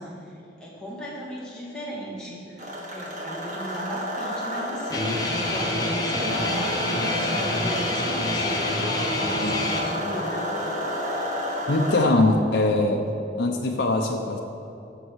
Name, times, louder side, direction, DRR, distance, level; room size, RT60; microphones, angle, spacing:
voice 1, 0.0-10.5, equal, 5° left, -7 dB, 2.0 m, -36 dB
sound 1, 2.6-12.1, equal, 40° right, 1.3 m, -30 dB
Guitar, 4.9-9.8, left 2 dB, 20° left, 0.9 m, -27 dB
voice 2, 11.7-13.0 13.4-14.4, left 2 dB, 75° left, 1 dB, 0.7 m, -21 dB
13.5 x 5.5 x 4.7 m, 2.8 s
head